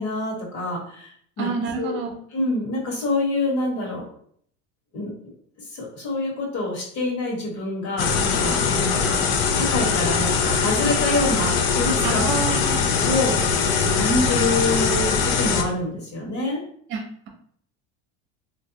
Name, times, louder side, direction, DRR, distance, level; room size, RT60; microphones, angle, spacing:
voice 1, 0.0-1.5 1.8-1.9 2.3-4.0 4.9-5.1 5.6-9.2 9.5-12.2 12.8-16.6, left 2 dB, 55° left, -2 dB, 1.4 m, -26 dB
voice 2, 1.4-2.2 12.0-12.8 16.9-17.3, right 5 dB, 40° right, 3 dB, 0.8 m, -28 dB
sound 1, 8.0-15.6, left 5 dB, 80° left, 0.6 m, -21 dB
3.3 x 2.6 x 2.8 m, 0.63 s
cardioid pair, 155°, 29 cm